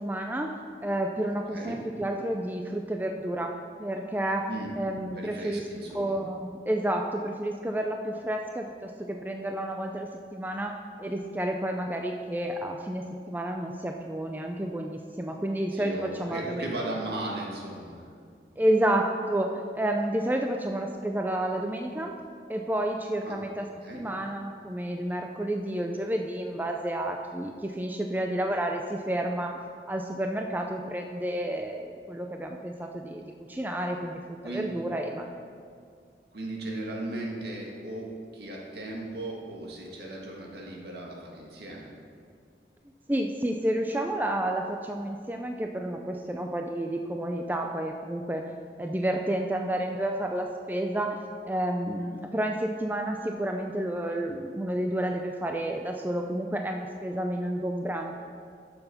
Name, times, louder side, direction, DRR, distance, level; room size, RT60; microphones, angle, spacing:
voice 1, 0.0-3.5 3.8-4.4 4.8-5.6 5.9-10.7 11.0-16.7 18.6-22.2 22.5-23.7 23.9-29.5 29.9-34.2 34.4-35.3 43.1-48.4 48.8-51.2 51.4-58.1, right 1 dB, 10° right, 3 dB, 0.4 m, -30 dB
voice 2, 5.1-6.2 15.7-18.1 23.2-24.0 34.4-34.7 36.3-41.9, right 2 dB, 70° right, -2 dB, 1.8 m, -37 dB
10.5 x 6.9 x 5.6 m, 2.2 s
head